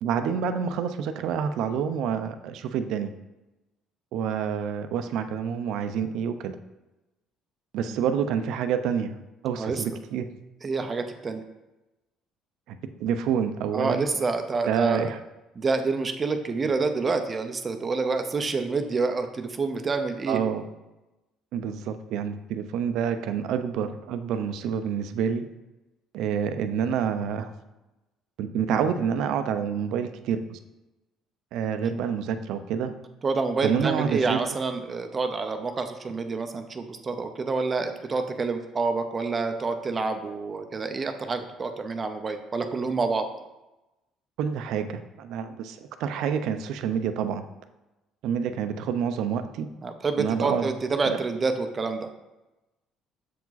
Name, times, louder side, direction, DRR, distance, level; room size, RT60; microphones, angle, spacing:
voice 1, 0.0-3.1 4.1-6.6 7.7-9.1 9.4-10.3 12.7-14.1 14.6-15.2 20.3-20.6 21.5-25.4 26.1-27.5 28.4-30.6 31.5-32.9 33.6-34.4 44.4-47.5 48.2-49.7 50.2-50.7 51.1-51.2, right 7 dB, 70° right, 9 dB, 0.6 m, -28 dB
voice 2, 10.6-11.4 13.7-15.1 15.6-20.4 32.8-32.9 33.2-43.3 49.8-52.1, right 4 dB, 25° right, 7 dB, 0.5 m, -28 dB
7.1 x 4.7 x 4.0 m, 1.0 s
cardioid pair, 150°, 0 cm